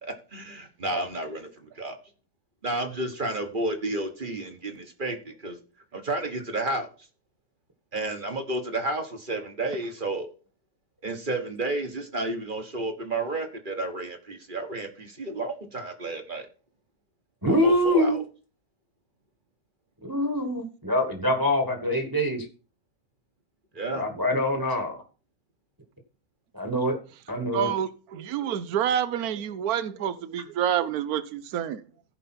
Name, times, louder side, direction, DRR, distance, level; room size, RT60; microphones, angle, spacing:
voice 1, 0.0-2.0 2.6-5.6 5.9-7.1 7.9-10.3 11.0-16.5 17.5-18.2 23.7-24.1, right 2 dB, 35° right, 1.3 m, -31 dB
voice 2, 17.4-18.2 20.0-22.5 23.9-25.0 26.5-27.0 27.3-27.7, left 1 dB, 15° right, 1.4 m, -24 dB
voice 3, 27.5-31.8, right 10 dB, 75° right, 1.3 m, -28 dB
15.5 x 5.3 x 4.3 m
omnidirectional pair, 1.7 m